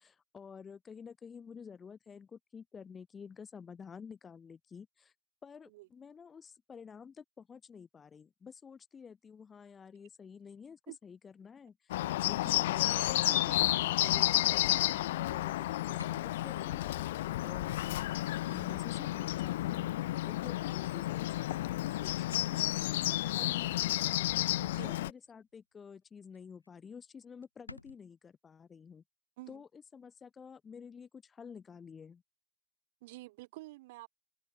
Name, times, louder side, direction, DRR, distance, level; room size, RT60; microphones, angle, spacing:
voice 1, 0.0-5.1 5.4-12.0 12.3-17.1 17.4-18.2 18.5-19.9 20.2-24.2 24.8-29.0 29.5-32.2, left 6 dB, 20° left, 1.5 m, -51 dB
Bird, 11.9-25.1, left 15 dB, 55° left, 0.4 m, -31 dB
voice 2, 24.6-24.9 29.4-29.6 33.0-34.1, right 20 dB, 50° right, 4.0 m, -49 dB
sound 1, 25.2-25.4 25.7-26.0 26.3-26.4 26.6-26.7 27.0-27.1 27.4-28.0, left 2 dB, 85° left, 0.8 m, -52 dB
open air
figure-of-eight pair, 90°, 0 cm